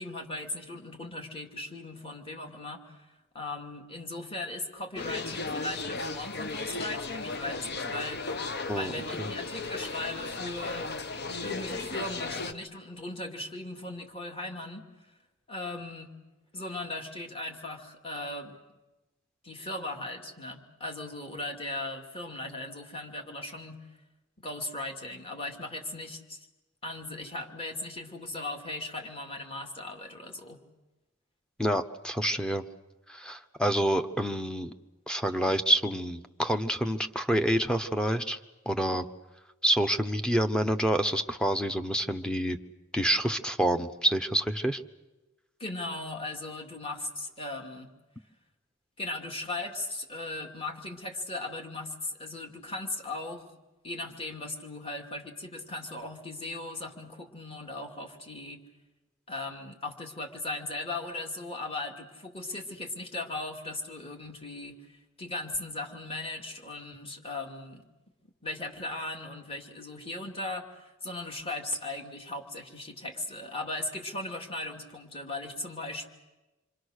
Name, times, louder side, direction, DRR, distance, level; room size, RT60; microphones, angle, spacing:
voice 1, 0.0-3.1 3.3-8.3 8.7-10.9 11.4-14.9 15.5-16.1 16.5-18.6 19.4-23.9 24.4-26.5 26.8-30.6 45.6-47.9 49.0-53.5 53.8-58.6 59.3-64.8 65.2-67.9 68.4-76.1, left 2 dB, 25° left, 2 dB, 2.5 m, -38 dB
sound 1, 5.0-12.5, left 3 dB, 50° left, 1.0 m, -35 dB
voice 2, 31.6-32.6 33.1-34.7 35.1-38.4 38.7-39.1 39.6-42.6 42.9-44.8, right 1 dB, 5° left, 5 dB, 0.9 m, -27 dB
27.5 x 24.5 x 6.5 m, 1.1 s
head